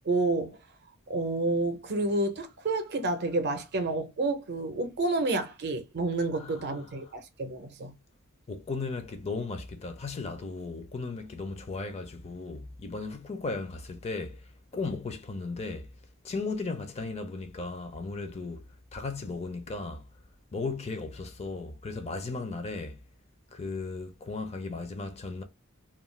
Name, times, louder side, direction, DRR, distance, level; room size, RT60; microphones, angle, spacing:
voice 1, 0.1-0.6 1.1-7.9, right 2 dB, 50° right, 0.6 m, -29 dB
voice 2, 6.4-6.8 8.5-14.4 14.7-15.9 16.2-18.6 18.9-20.0 20.5-23.0 23.5-25.4, left 3 dB, 30° left, 0.4 m, -36 dB
2.3 x 2.2 x 3.1 m
head